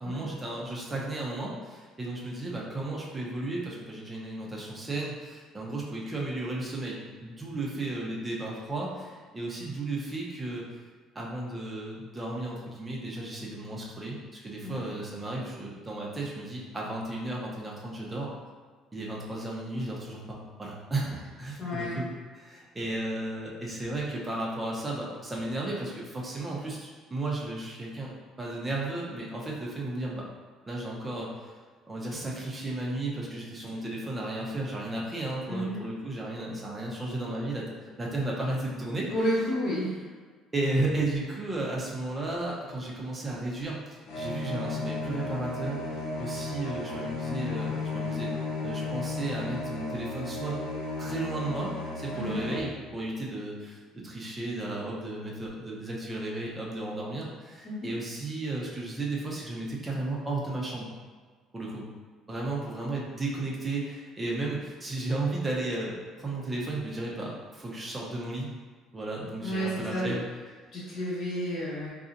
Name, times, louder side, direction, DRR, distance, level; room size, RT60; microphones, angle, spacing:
voice 1, 0.0-10.6 11.1-18.3 18.9-22.1 22.3-28.1 28.4-30.3 30.7-31.5 31.9-37.6 38.0-39.1 40.5-48.3 48.6-50.6 51.0-60.9 61.5-61.8 62.3-68.5 68.9-70.2, right 2 dB, 15° right, -4 dB, 0.7 m, -34 dB
voice 2, 21.6-22.0 35.5-35.8 39.1-40.0 52.1-52.4 57.6-57.9 69.4-70.1 70.7-71.9, equal, 50° left, -7 dB, 1.4 m, -31 dB
sound 1, 44.1-52.6, left 3 dB, 80° left, 0.5 m, -34 dB
3.9 x 2.4 x 2.6 m, 1.5 s
cardioid pair, 115°, 0 cm